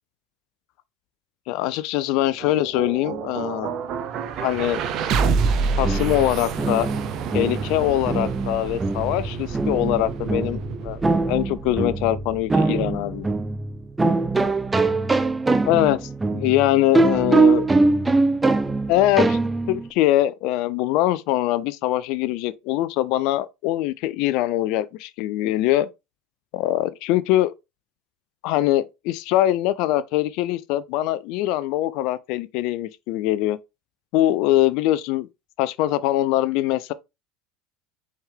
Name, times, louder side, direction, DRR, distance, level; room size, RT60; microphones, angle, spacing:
voice 1, 1.5-3.7 4.4-4.8 5.8-6.9 7.3-11.0 11.3-13.3 15.7-17.7 18.9-19.4 19.7-25.9 26.5-27.5 28.4-33.6 34.1-35.3 35.6-36.9, left 14 dB, 60° left, 0.3 m, -22 dB
sound 1, 2.1-14.2, right 5 dB, 50° right, 0.6 m, -29 dB
sound 2, 5.6-19.9, right 3 dB, 15° right, 0.5 m, -23 dB
4.4 x 3.6 x 3.3 m
hypercardioid pair, 75°, 0 cm